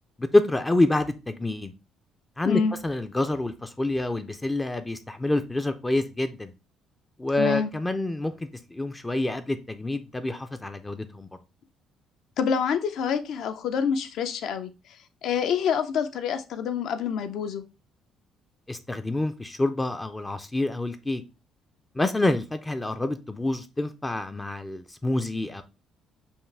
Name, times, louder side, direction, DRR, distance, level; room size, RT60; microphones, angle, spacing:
voice 1, 0.2-1.7 2.4-6.5 7.2-8.3 8.7-11.3 18.7-21.2 22.0-25.6, left 2 dB, 10° left, 0.3 m, -27 dB
voice 2, 7.4-7.7 12.4-14.7 15.2-17.6, left 7 dB, 65° left, 0.5 m, -26 dB
5.5 x 2.4 x 3.3 m
cardioid pair, 150°, 0 cm